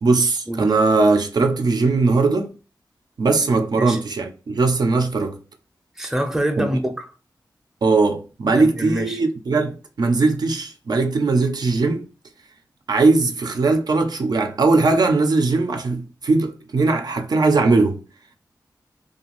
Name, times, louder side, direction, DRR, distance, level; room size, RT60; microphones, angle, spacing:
voice 1, 0.0-2.5 3.2-5.4 6.6-6.7 7.8-12.0 12.9-18.0, right 3 dB, 65° right, 0.4 m, -19 dB
voice 2, 6.0-7.1 8.5-9.2, right 1 dB, 5° right, 0.5 m, -25 dB
2.4 x 2.3 x 2.9 m
wide cardioid pair, 85°, 8 cm